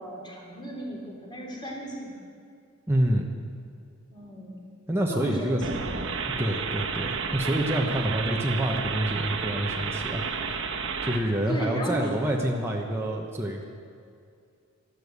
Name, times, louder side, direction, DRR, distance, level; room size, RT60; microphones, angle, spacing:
voice 1, 0.0-2.2 4.1-4.6 5.1-6.0 11.5-12.0, right 1 dB, 20° left, -2 dB, 3.4 m, -36 dB
voice 2, 2.9-3.3 4.9-5.6 6.4-10.2 11.0-13.6, right 1 dB, 10° right, -1 dB, 1.1 m, -27 dB
sound 1, 5.6-11.2, right 5 dB, 60° right, 1.3 m, -31 dB
13.0 x 12.5 x 8.2 m, 2.3 s
head